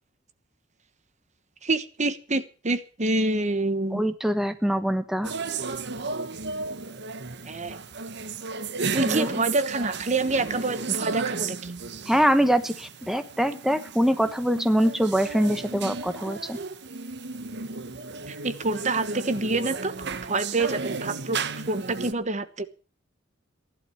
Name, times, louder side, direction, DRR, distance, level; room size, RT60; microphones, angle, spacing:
voice 1, 1.6-4.0 7.4-7.8 8.9-11.7 18.3-19.9 20.2-21.4 21.7-22.7, right 2 dB, 35° right, 12 dB, 1.2 m, -27 dB
voice 2, 3.9-5.3 9.0-9.3 12.1-16.6, equal, ahead, 9 dB, 1.1 m, -24 dB
sound 1, 5.2-22.1, right 4 dB, 60° right, 1.2 m, -34 dB
16.5 x 11.5 x 7.1 m, 0.39 s
head